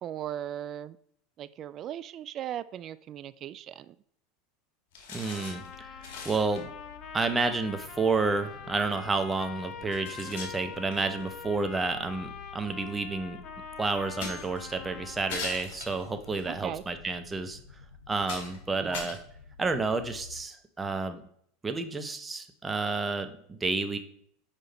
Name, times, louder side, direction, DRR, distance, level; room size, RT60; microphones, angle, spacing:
voice 1, 0.0-1.0 1.4-4.0 16.5-16.8 18.7-19.1, right 11 dB, 45° right, 16 dB, 0.3 m, -38 dB
sound 1, 4.9-5.7 6.0-6.6 8.1-8.2 9.1-9.2 9.9-11.2 12.4-12.5 14.2-14.7 15.3-16.4 17.1-17.2 17.8-17.9 18.2-18.6 18.9-19.9, left 4 dB, 60° left, 1.9 m, -40 dB
voice 2, 5.1-6.7 7.1-13.4 13.8-17.6 18.1-19.2 19.6-21.3 21.6-24.0, right 3 dB, 15° right, 8 dB, 0.9 m, -30 dB
Trumpet, 5.2-15.6, left 6 dB, 45° left, 0.9 m, -44 dB
sound 2, 5.5-20.4, left 5 dB, 80° left, 1.4 m, -51 dB
5.8 x 5.0 x 4.2 m, 0.64 s
hypercardioid pair, 90°, 0 cm